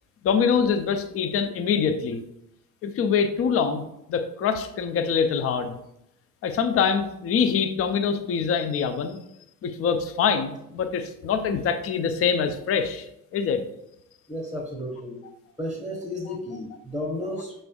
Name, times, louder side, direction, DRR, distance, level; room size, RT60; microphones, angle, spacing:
voice 1, 0.2-2.2 2.8-3.8 4.1-5.8 6.4-9.2 9.6-13.1 13.3-13.6, left 6 dB, 30° left, 8 dB, 0.4 m, -24 dB
voice 2, 14.3-15.2 15.6-17.5, left 1 dB, ahead, -1 dB, 0.9 m, -32 dB
5.1 x 3.2 x 2.3 m, 0.81 s
hypercardioid pair, 60°, 46 cm